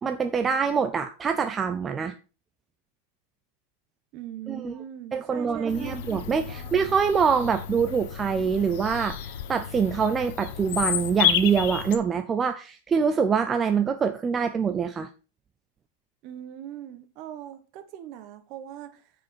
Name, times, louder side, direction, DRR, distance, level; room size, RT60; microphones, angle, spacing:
voice 1, 0.0-2.1 4.5-4.7 5.1-15.1, right 6 dB, 15° right, 0.5 m, -25 dB
voice 2, 4.1-6.8 16.2-19.1, right 11 dB, 40° right, 1.2 m, -41 dB
Bird vocalization bird call bird song, 5.7-12.0, left 10 dB, 60° left, 1.0 m, -31 dB
9.7 x 5.0 x 4.6 m
supercardioid pair, 160°, 0 cm